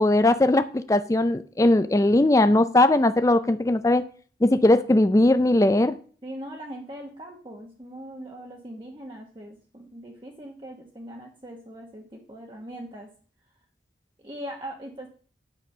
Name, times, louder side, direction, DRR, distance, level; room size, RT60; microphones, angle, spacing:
voice 1, 0.0-4.0 4.4-5.9, left 1 dB, 20° left, 11 dB, 0.4 m, -19 dB
voice 2, 6.2-13.1 14.2-15.1, right 1 dB, 30° right, 0 dB, 1.0 m, -40 dB
9.1 x 7.1 x 5.4 m, 0.43 s
head